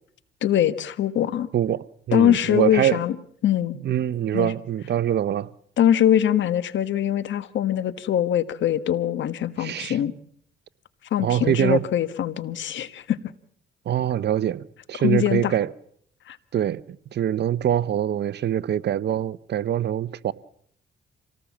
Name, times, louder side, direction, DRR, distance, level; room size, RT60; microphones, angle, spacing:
voice 1, 0.4-1.5 2.1-3.1 3.4-3.8 4.3-4.5 5.8-10.1 11.1-13.2 15.0-15.5 16.3-16.4, left 10 dB, 70° left, 1.4 m, -22 dB
voice 2, 1.5-3.0 3.8-5.5 9.6-10.0 11.2-11.8 13.9-15.7 16.5-16.8 17.1-20.3, right 10 dB, 60° right, 0.9 m, -24 dB
26.0 x 18.5 x 7.3 m
cardioid pair, 90°, 20 cm